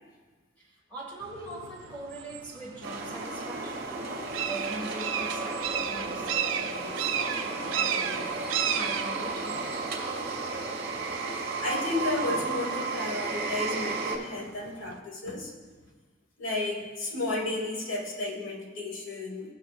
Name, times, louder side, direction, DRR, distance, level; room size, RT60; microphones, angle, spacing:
voice 1, 0.6-8.4 8.7-9.9, right 1 dB, 10° left, -5 dB, 1.6 m, -42 dB
sound 1, 1.2-15.0, right 9 dB, 70° right, 0.5 m, -36 dB
sound 2, 2.8-14.2, right 3 dB, 55° right, 1.2 m, -33 dB
voice 2, 11.6-15.5 16.4-19.5, left 2 dB, 80° left, 0 dB, 1.5 m, -32 dB
15.0 x 6.6 x 2.4 m, 1.4 s
head